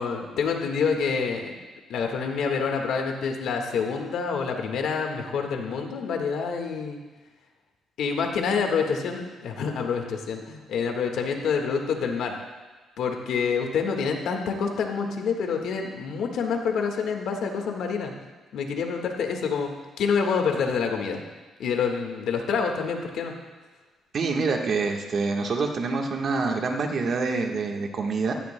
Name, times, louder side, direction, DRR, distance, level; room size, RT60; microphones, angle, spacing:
voice 1, 0.0-1.6 1.9-7.0 8.0-12.3 13.0-18.1 18.5-21.2 21.6-23.3, left 5 dB, 75° left, 3 dB, 1.6 m, -27 dB
voice 2, 24.1-28.3, right 4 dB, 55° right, 2 dB, 1.3 m, -26 dB
16.0 x 14.0 x 2.2 m, 1.3 s
cardioid pair, 90°, 0 cm